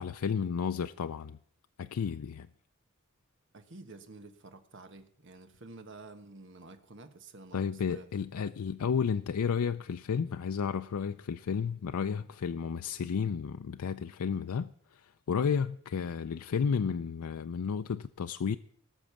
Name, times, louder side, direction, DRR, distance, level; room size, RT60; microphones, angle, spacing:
voice 1, 0.0-1.4 1.8-2.5 7.5-18.6, left 6 dB, 85° left, 0.4 m, -32 dB
voice 2, 3.5-8.1, right 2 dB, 55° right, 1.2 m, -50 dB
18.5 x 6.3 x 7.1 m
head